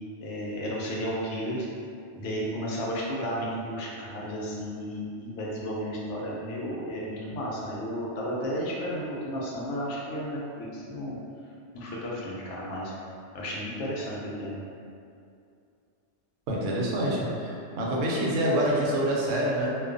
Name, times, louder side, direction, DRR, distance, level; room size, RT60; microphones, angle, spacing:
voice 1, 0.2-1.7 2.2-11.2 11.7-12.9 13.3-14.6, equal, 75° left, -5 dB, 0.9 m, -33 dB
voice 2, 16.5-19.8, right 1 dB, 90° right, -4 dB, 0.9 m, -26 dB
2.3 x 2.3 x 2.4 m, 2.4 s
omnidirectional pair, 1.2 m